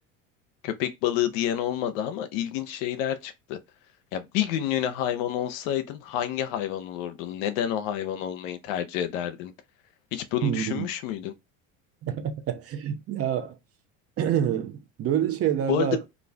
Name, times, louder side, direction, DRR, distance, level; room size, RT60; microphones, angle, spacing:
voice 1, 0.6-3.6 4.1-9.5 10.1-11.3 15.7-16.1, left 11 dB, 65° left, 0.6 m, -29 dB
voice 2, 10.4-10.9 12.0-13.6 14.2-16.0, right 10 dB, 35° right, 0.6 m, -27 dB
2.5 x 2.4 x 3.2 m
hypercardioid pair, 75°, 41 cm